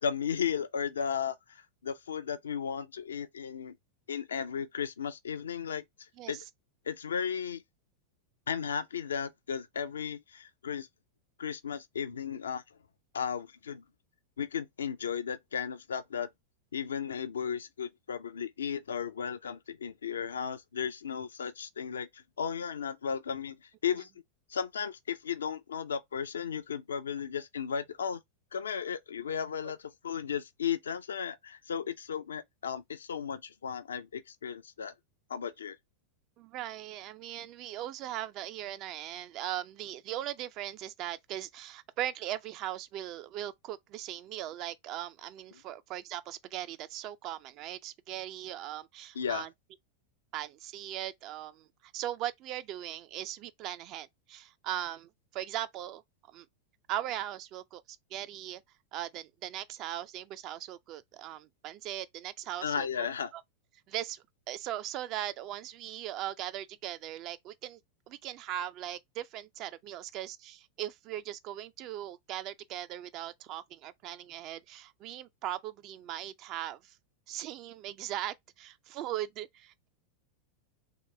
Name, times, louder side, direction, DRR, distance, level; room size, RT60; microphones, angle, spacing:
voice 1, 0.0-3.8 4.1-5.8 6.3-6.4 6.9-7.6 8.5-10.9 11.4-12.6 13.1-13.8 14.4-16.3 16.7-24.1 24.5-28.2 28.5-34.9 35.3-35.8 49.1-49.5 62.6-63.3, left 7 dB, 70° left, 0.4 m, -35 dB
voice 2, 36.4-49.5 50.3-56.0 56.3-56.5 56.9-58.6 58.9-63.1 63.3-63.4 63.9-67.8 68.1-77.0 77.3-79.9, right 12 dB, 40° right, 0.3 m, -39 dB
3.1 x 2.8 x 3.2 m
figure-of-eight pair, 90°, 0 cm